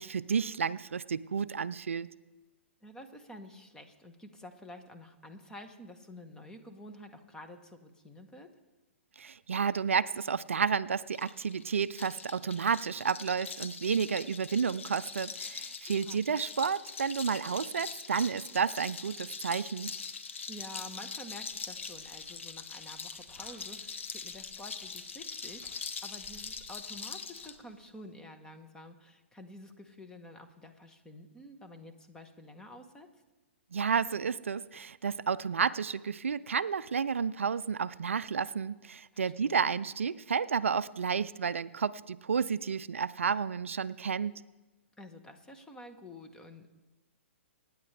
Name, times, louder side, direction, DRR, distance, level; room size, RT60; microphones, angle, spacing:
voice 1, 0.0-2.1 9.2-19.9 33.7-44.3, right 6 dB, 75° right, 17 dB, 0.4 m, -31 dB
voice 2, 2.8-8.5 16.0-16.2 20.5-33.1 39.1-39.6 45.0-46.7, left 1 dB, 10° left, 6 dB, 1.2 m, -49 dB
sound 1, 11.1-27.6, left 5 dB, 70° left, 1.1 m, -43 dB
sound 2, 21.3-28.1, equal, 25° left, 4.2 m, -63 dB
24.5 x 9.6 x 3.4 m, 1.1 s
figure-of-eight pair, 120°, 7 cm